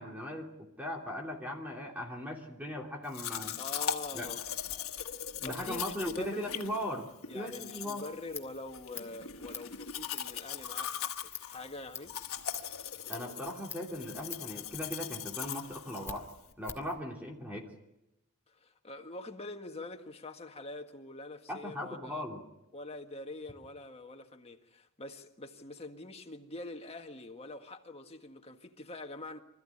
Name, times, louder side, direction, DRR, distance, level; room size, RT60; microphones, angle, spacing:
voice 1, 0.0-3.6 4.1-4.3 5.4-7.1 7.3-8.0 13.1-16.3 16.6-17.7 21.5-22.4, left 1 dB, 10° right, 3.0 m, -38 dB
Domestic sounds home sounds, 3.1-16.5, left 9 dB, 80° left, 1.5 m, -40 dB
voice 2, 3.6-4.4 5.4-6.5 7.3-12.2 18.5-22.2 22.7-29.4, left 2 dB, 30° left, 1.7 m, -44 dB
Scissors, 8.0-17.0, left 5 dB, 10° left, 2.1 m, -47 dB
25.5 x 15.0 x 10.0 m
head